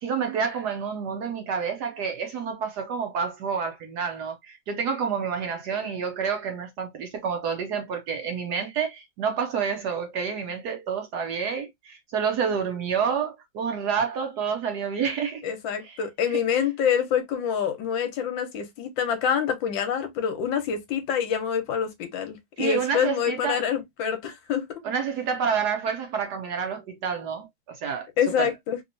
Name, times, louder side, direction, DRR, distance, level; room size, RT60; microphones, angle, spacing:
voice 1, 0.0-15.4 15.8-16.0 22.6-23.6 24.8-28.1 28.4-28.5, right 6 dB, 70° right, 1.0 m, -29 dB
voice 2, 15.4-24.7 28.2-28.8, left 8 dB, 75° left, 1.4 m, -26 dB
3.4 x 2.8 x 2.5 m
omnidirectional pair, 2.2 m